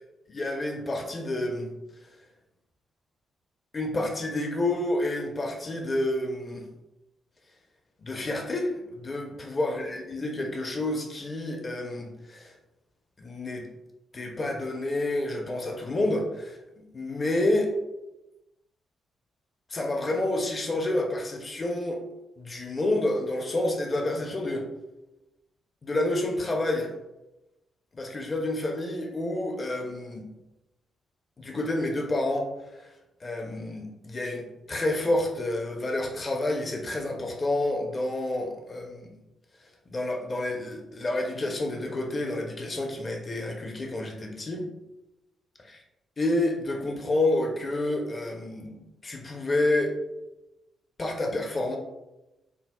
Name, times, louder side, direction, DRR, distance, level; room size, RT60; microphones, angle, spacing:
voice 1, 0.3-1.7 3.7-6.6 8.0-12.5 13.2-13.6 14.1-17.7 19.7-22.0 22.4-24.6 25.8-26.9 27.9-30.3 31.4-32.5 33.2-39.1 39.9-44.7 45.7-45.8 46.2-49.9 51.0-51.8, left 1 dB, 40° left, 1 dB, 0.7 m, -29 dB
6.9 x 2.3 x 2.2 m, 0.97 s
hypercardioid pair, 40°, 0 cm